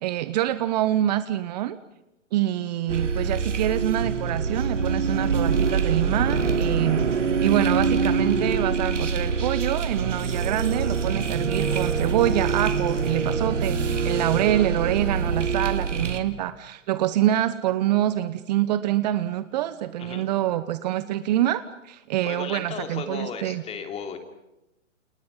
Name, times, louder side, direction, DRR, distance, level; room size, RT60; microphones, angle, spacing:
voice 1, 0.0-1.8 2.3-7.1 7.4-23.6, right 13 dB, 35° right, 14 dB, 1.0 m, -26 dB
sound 1, 2.9-16.2, right 5 dB, 70° right, 3.1 m, -25 dB
voice 2, 22.2-24.2, left 6 dB, 15° left, 6 dB, 3.1 m, -35 dB
29.5 x 28.0 x 5.7 m, 0.91 s
figure-of-eight pair, 130°, 38 cm